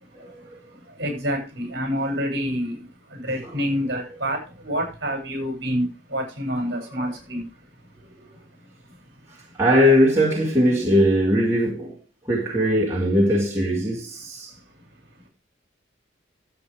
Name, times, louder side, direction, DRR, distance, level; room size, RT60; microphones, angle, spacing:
voice 1, 0.7-7.7 8.2-8.3 8.8-9.0, equal, 55° right, 7.5 m, -28 dB
voice 2, 9.6-11.9 12.3-14.5, equal, 15° right, 2.9 m, -19 dB
12.5 x 8.6 x 5.1 m
head